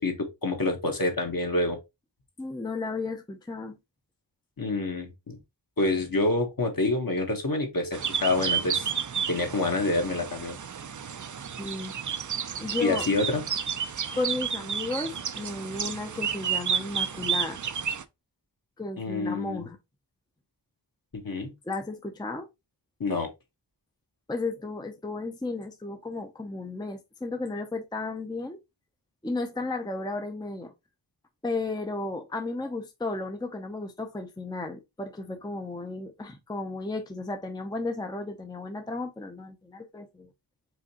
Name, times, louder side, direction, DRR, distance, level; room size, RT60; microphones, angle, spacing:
voice 1, 0.0-1.8 4.6-5.4 5.8-8.9 9.3-10.6 12.8-13.4 19.0-19.6 21.1-21.5 23.0-23.3, left 2 dB, 50° left, 1.4 m, -27 dB
voice 2, 2.4-3.8 11.6-11.9 12.6-13.1 14.1-17.6 18.8-19.8 21.6-22.5 24.3-28.6 29.2-30.7 31.4-40.3, left 3 dB, 10° left, 0.6 m, -34 dB
sound 1, 7.9-18.0, right 7 dB, 45° right, 0.5 m, -31 dB
4.9 x 3.5 x 2.9 m
wide cardioid pair, 80°, 44 cm